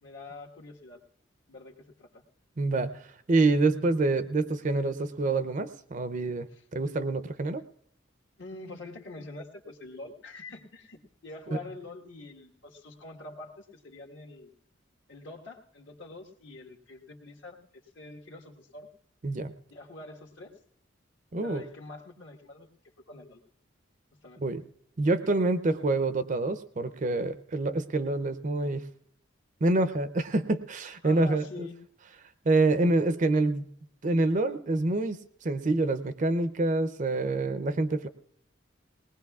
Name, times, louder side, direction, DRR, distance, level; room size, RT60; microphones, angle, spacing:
voice 1, 0.0-1.0 1.5-2.2 6.5-6.6 8.4-14.5 15.1-17.6 17.9-18.9 19.7-20.5 21.4-22.7 23.0-23.4 24.2-24.4 31.0-31.8, left 2 dB, 65° left, 0 dB, 1.4 m, -45 dB
voice 2, 2.6-2.9 3.3-6.5 6.7-7.6 11.5-11.6 19.2-19.5 21.3-21.6 24.4-24.6 25.0-28.8 29.6-31.7 32.5-33.7 34.0-38.1, right 2 dB, 40° right, 12 dB, 0.5 m, -26 dB
20.0 x 19.0 x 2.4 m, 0.69 s
head